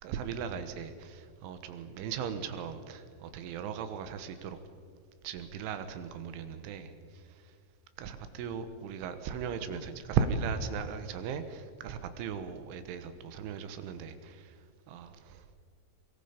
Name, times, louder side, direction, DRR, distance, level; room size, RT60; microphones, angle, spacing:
voice 1, 0.0-4.6 5.2-7.2 8.0-14.6 14.9-15.6, right 6 dB, 85° right, 9 dB, 3.7 m, -37 dB
23.0 x 23.0 x 5.2 m, 2.1 s
omnidirectional pair, 5.4 m